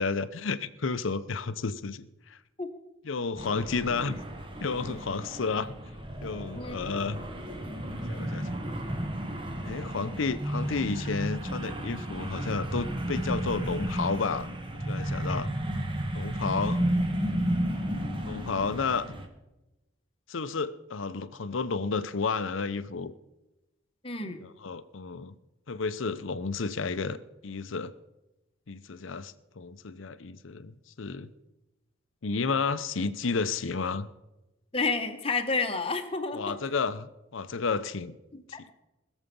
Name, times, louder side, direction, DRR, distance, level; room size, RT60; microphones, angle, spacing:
voice 1, 0.0-2.4 3.0-4.2 4.6-5.8 6.2-7.2 8.1-8.5 9.6-14.5 14.9-15.5 16.1-16.8 18.3-19.1 20.3-23.1 24.4-25.3 25.7-27.2 27.4-27.9 28.7-31.3 32.2-34.1 36.3-38.2, left 4 dB, 80° left, 13 dB, 0.7 m, -31 dB
sound 1, 3.4-19.3, equal, 25° right, 1.1 m, -33 dB
voice 2, 24.0-24.4 34.7-36.6 38.3-38.7, left 4 dB, 30° left, 6 dB, 1.1 m, -30 dB
20.5 x 7.2 x 5.3 m, 0.99 s
head